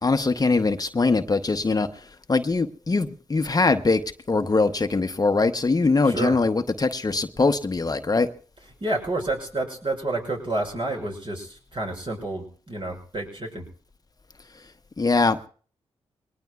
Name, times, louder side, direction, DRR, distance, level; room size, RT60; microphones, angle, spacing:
voice 1, 0.0-4.0 4.3-8.3 15.0-15.5, left 3 dB, 35° left, 9 dB, 0.9 m, -22 dB
voice 2, 6.0-6.4 8.6-13.7, right 2 dB, 50° right, 1 dB, 6.2 m, -29 dB
23.0 x 19.0 x 2.4 m, 0.42 s
cardioid pair, 55°, 11 cm